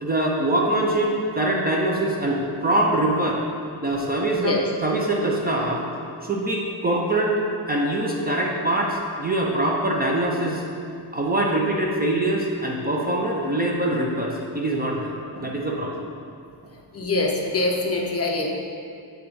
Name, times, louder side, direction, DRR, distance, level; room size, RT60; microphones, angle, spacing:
voice 1, 0.0-3.4 3.8-5.8 6.2-7.3 7.7-10.6 11.1-16.0, right 1 dB, 20° right, -2 dB, 0.4 m, -23 dB
voice 2, 4.3-4.6 15.4-15.5 16.9-18.5, left 2 dB, 35° left, 1 dB, 0.5 m, -24 dB
7.5 x 3.4 x 5.2 m, 2.4 s
wide cardioid pair, 175°, 44 cm